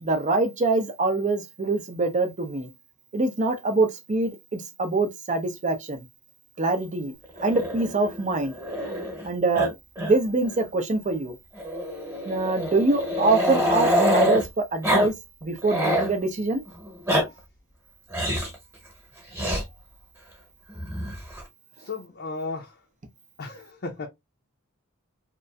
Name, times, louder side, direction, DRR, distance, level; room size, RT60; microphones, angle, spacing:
voice 1, 0.0-2.7 3.1-6.0 6.6-8.6 8.9-9.0 9.2-11.4 12.3-15.1 15.4-16.6, right 3 dB, 35° right, 0.6 m, -25 dB
Growling, 7.4-9.3 9.5-9.7 10.0-10.1 10.5-10.6 11.6-14.4 14.8-15.1 15.4-16.1 16.8-17.2 18.1-18.6 19.3-19.6 20.8-21.4, equal, 15° right, 1.0 m, -25 dB
voice 2, 21.8-22.8 23.4-24.1, left 3 dB, 50° left, 0.5 m, -34 dB
2.9 x 2.5 x 2.2 m
head